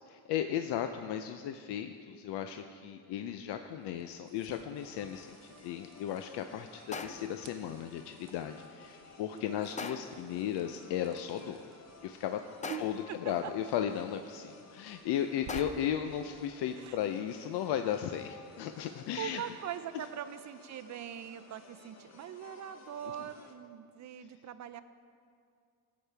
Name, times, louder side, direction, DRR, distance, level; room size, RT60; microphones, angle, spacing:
voice 1, 0.3-11.6 12.0-12.4 12.8-19.4, left 10 dB, 65° left, 7 dB, 0.6 m, -35 dB
sound 1, 3.4-17.0, right 7 dB, 70° right, 0.9 m, -58 dB
sound 2, 4.7-23.5, left 4 dB, 35° left, 1.1 m, -56 dB
sound 3, 6.9-7.5 9.8-10.3 12.6-13.2 15.5-16.1, left 4 dB, 20° left, 0.4 m, -41 dB
voice 2, 9.3-9.9 12.6-13.5 16.8-17.0 19.2-24.8, right 9 dB, 40° right, 12 dB, 0.5 m, -42 dB
15.0 x 8.5 x 3.4 m, 2.3 s
cardioid pair, 115°, 45 cm